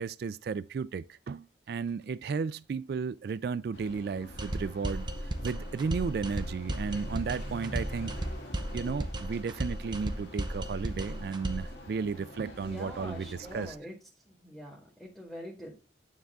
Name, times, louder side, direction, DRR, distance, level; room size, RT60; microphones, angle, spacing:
voice 1, 0.0-8.2 8.7-13.8, right 5 dB, 60° right, 0.3 m, -34 dB
sound 1, 3.7-13.7, equal, 75° left, 2.4 m, -46 dB
sound 2, 4.4-11.8, right 1 dB, 25° right, 0.8 m, -35 dB
voice 2, 12.6-13.9 14.2-15.7, equal, ahead, 2.1 m, -44 dB
9.4 x 3.5 x 3.7 m
head